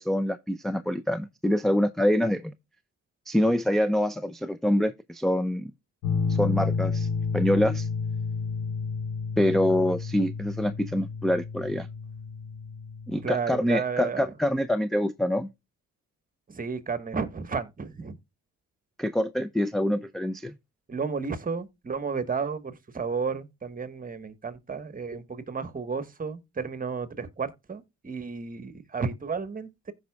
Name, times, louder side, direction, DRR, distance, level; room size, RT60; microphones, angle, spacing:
voice 1, 0.0-2.5 3.3-5.7 6.3-7.1 7.3-7.9 9.4-11.9 13.1-15.5 19.0-20.5, left 1 dB, ahead, 0.4 m, -25 dB
sound 1, 6.0-13.3, left 5 dB, 90° left, 1.6 m, -30 dB
voice 2, 13.2-14.3 16.5-18.2 20.9-29.9, right 5 dB, 30° right, 1.3 m, -32 dB
15.5 x 5.2 x 2.3 m
cardioid pair, 90°, 30 cm